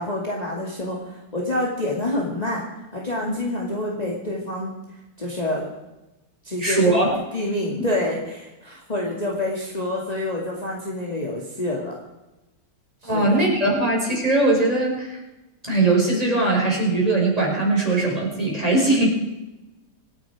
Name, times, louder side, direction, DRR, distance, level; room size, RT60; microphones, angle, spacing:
voice 1, 0.0-2.6 2.9-4.7 5.2-5.6 6.4-7.0 7.3-12.0 13.0-13.4, left 1 dB, 20° left, -2 dB, 2.5 m, -27 dB
voice 2, 6.6-7.2 7.8-7.9 13.0-15.2 15.6-19.1, right 2 dB, 20° right, -3 dB, 6.3 m, -20 dB
26.5 x 9.8 x 5.0 m, 1.0 s
omnidirectional pair, 2.1 m